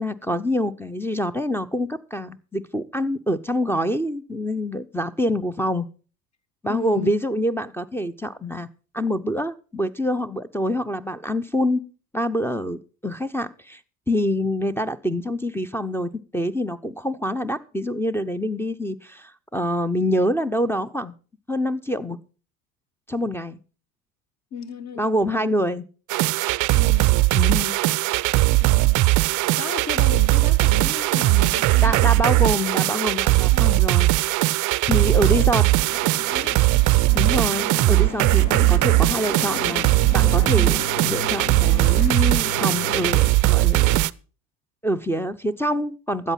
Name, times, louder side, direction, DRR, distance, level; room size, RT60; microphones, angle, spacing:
voice 1, 0.0-5.9 6.6-8.7 8.9-11.8 12.1-13.8 14.1-21.1 21.5-22.2 23.1-23.6 25.0-25.8 27.3-27.8 31.8-34.1 34.5-35.6 37.1-39.8 40.1-44.1 44.8-46.3, equal, 5° left, 0.6 m, -26 dB
voice 2, 6.7-7.1 24.5-25.6 26.7-27.2 28.6-32.5 33.4-33.6 35.0-35.6 36.3-36.7, left 6 dB, 30° left, 1.6 m, -35 dB
sound 1, 26.1-44.1, right 20 dB, 40° right, 0.5 m, -19 dB
sound 2, 35.2-43.3, left 8 dB, 50° left, 1.3 m, -35 dB
13.0 x 8.3 x 5.7 m
hypercardioid pair, 80°, 50 cm